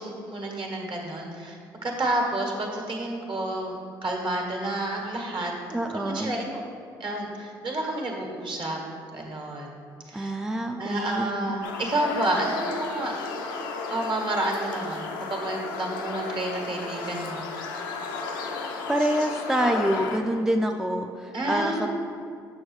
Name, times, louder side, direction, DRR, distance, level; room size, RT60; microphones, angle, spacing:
voice 1, 0.0-6.6 7.0-8.8 9.1-9.8 10.1-10.3 10.8-13.1 13.9-17.4 21.3-21.9, right 1 dB, 50° right, 0 dB, 1.4 m, -30 dB
voice 2, 5.7-6.3 10.1-11.5 18.9-22.0, right 1 dB, 5° right, 4 dB, 0.4 m, -26 dB
sound 1, 11.6-20.2, left 4 dB, 90° left, 0.5 m, -33 dB
6.3 x 6.2 x 3.2 m, 2.3 s
hypercardioid pair, 55°, 10 cm